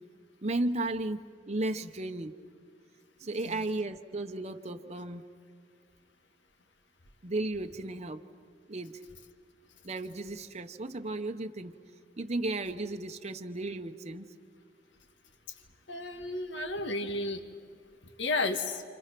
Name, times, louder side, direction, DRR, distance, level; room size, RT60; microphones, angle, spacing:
voice 1, 0.4-1.2 1.5-2.3 3.2-5.3 7.2-8.2 8.7-9.0 9.8-11.8 12.2-14.3, right 2 dB, 40° right, 6 dB, 0.9 m, -34 dB
voice 2, 15.9-17.4 18.2-18.8, left 2 dB, 75° left, 6 dB, 2.0 m, -32 dB
29.0 x 28.0 x 6.0 m, 2.3 s
head